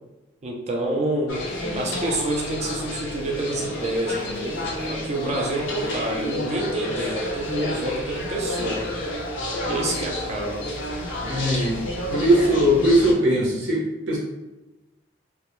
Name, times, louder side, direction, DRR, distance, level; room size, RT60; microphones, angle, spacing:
voice 1, 0.4-1.4 1.7-8.9 9.7-10.7, right 1 dB, 35° right, 0 dB, 0.4 m, -28 dB
sound 1, 1.3-13.1, left 1 dB, 70° left, 0.5 m, -30 dB
voice 2, 11.2-11.8 12.1-14.2, equal, 65° right, -4 dB, 0.7 m, -20 dB
2.1 x 2.1 x 2.9 m, 1.0 s
head